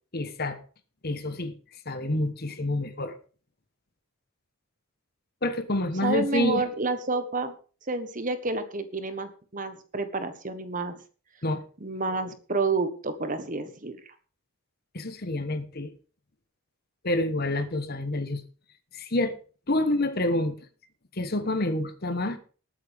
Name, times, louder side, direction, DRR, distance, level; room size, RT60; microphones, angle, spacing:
voice 1, 0.1-0.6 1.0-1.5 1.8-3.2 5.4-6.6 11.4-11.6 14.9-15.9 17.0-18.4 18.9-19.3 19.7-20.5 21.1-22.4, left 1 dB, 45° left, 10 dB, 1.3 m, -28 dB
voice 2, 6.0-7.5 7.9-11.0 11.8-14.1, right 3 dB, 35° right, 10 dB, 1.4 m, -29 dB
20.0 x 8.7 x 3.6 m, 0.38 s
head